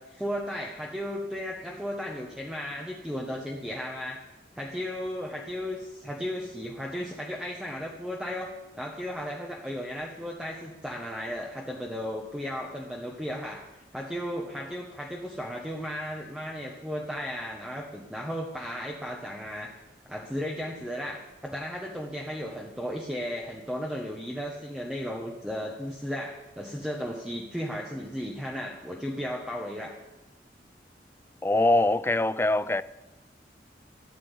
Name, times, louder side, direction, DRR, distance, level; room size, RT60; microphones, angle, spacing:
voice 1, 0.0-4.2 4.5-13.7 13.9-19.7 20.0-30.0, equal, 5° right, 1.3 m, -35 dB
voice 2, 31.4-32.8, left 2 dB, 15° left, 0.4 m, -23 dB
14.0 x 10.0 x 8.3 m
head